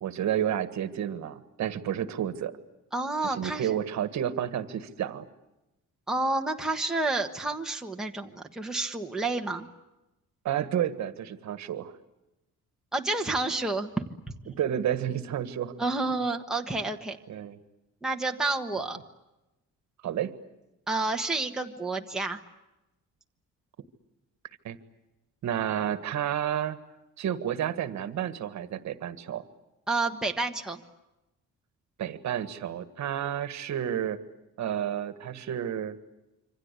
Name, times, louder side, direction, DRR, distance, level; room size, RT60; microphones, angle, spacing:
voice 1, 0.0-2.6 3.2-5.2 10.4-11.9 14.5-15.8 17.3-17.6 20.0-20.3 24.6-24.8 25.4-26.8 27.2-29.4 32.0-34.2 34.6-35.9, right 10 dB, 60° right, 11 dB, 1.6 m, -31 dB
voice 2, 2.9-3.7 6.1-9.7 12.9-14.0 14.4-14.5 15.8-17.2 18.0-19.0 20.9-22.4 29.9-30.8, right 2 dB, ahead, 1 dB, 1.4 m, -29 dB
27.0 x 25.5 x 8.3 m, 0.97 s
cardioid pair, 180°, 31 cm